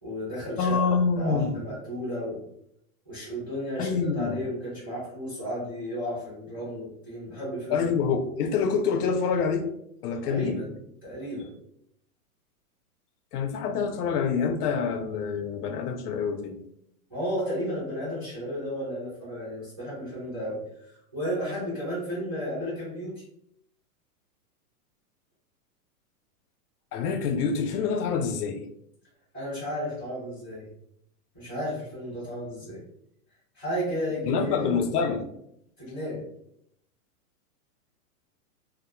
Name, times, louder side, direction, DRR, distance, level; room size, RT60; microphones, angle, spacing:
voice 1, 0.0-2.4 3.1-7.9 10.2-10.6 11.0-11.5 17.1-23.2 29.3-30.7 31.3-32.8 33.5-34.8 35.8-36.2, equal, 15° right, -12 dB, 0.4 m, -33 dB
voice 2, 0.6-1.6 3.8-4.4 7.7-9.7 10.0-10.6 13.3-16.6 26.9-28.7 34.3-35.2, left 5 dB, 85° left, 7 dB, 0.5 m, -26 dB
2.2 x 2.0 x 2.8 m, 0.74 s
supercardioid pair, 180°, 45 cm